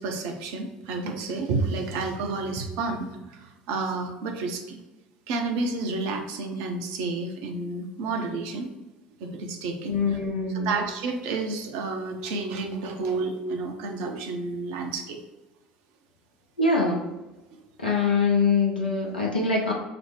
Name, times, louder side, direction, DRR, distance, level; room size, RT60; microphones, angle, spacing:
voice 1, 0.0-4.8 5.3-8.7 9.2-10.2 10.6-15.2, right 3 dB, 60° right, 4 dB, 0.7 m, -30 dB
voice 2, 9.9-10.8 16.6-17.1 17.8-19.7, left 4 dB, 85° left, -2 dB, 0.6 m, -23 dB
5.8 x 2.1 x 3.3 m, 1.1 s
figure-of-eight pair, 65°, 5 cm